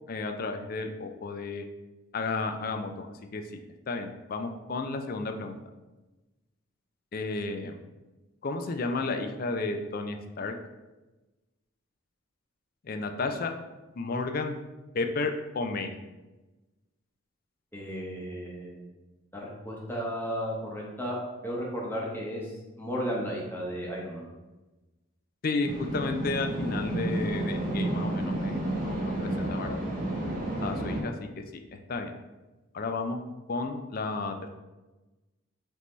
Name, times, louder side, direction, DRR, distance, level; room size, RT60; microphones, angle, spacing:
voice 1, 0.1-1.6 2.1-3.1 3.3-3.4 3.9-5.6 7.1-7.7 8.4-10.5 12.8-13.5 14.0-14.6 14.9-16.0 25.4-29.0 29.2-29.8 30.6-31.4 31.7-32.1 32.7-33.2 33.5-34.5, left 3 dB, 40° left, 6 dB, 0.3 m, -32 dB
voice 2, 17.7-18.8 19.3-22.5 22.8-24.3, equal, 10° left, -3 dB, 0.8 m, -34 dB
sound 1, 25.6-31.0, right 1 dB, 40° right, 0.8 m, -31 dB
5.2 x 2.7 x 3.0 m, 1.1 s
head